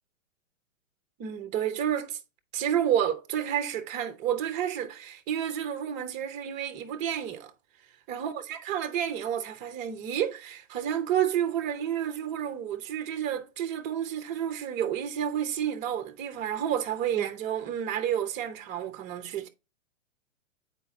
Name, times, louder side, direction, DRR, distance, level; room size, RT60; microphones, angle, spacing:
voice 1, 1.2-2.2 2.5-7.5 8.1-19.5, right 9 dB, 20° right, 0.6 m, -30 dB
8.2 x 4.4 x 2.7 m
hypercardioid pair, 135°, 39 cm